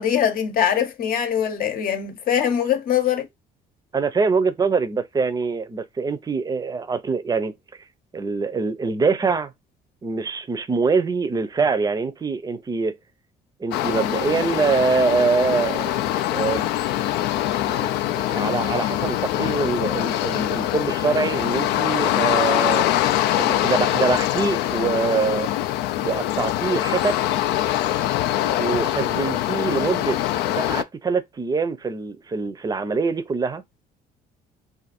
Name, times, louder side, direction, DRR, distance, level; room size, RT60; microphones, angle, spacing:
voice 1, 0.0-3.3, left 9 dB, 60° left, 0.8 m, -22 dB
voice 2, 3.9-7.5 8.1-9.5 10.0-13.0 13.6-16.7 17.7-22.9 23.4-25.5 26.0-27.2 28.6-30.2 30.6-33.6, right 4 dB, 20° right, 0.5 m, -24 dB
sound 1, 13.7-30.8, left 13 dB, 80° left, 0.4 m, -23 dB
2.6 x 2.5 x 4.2 m
cardioid pair, 110°, 17 cm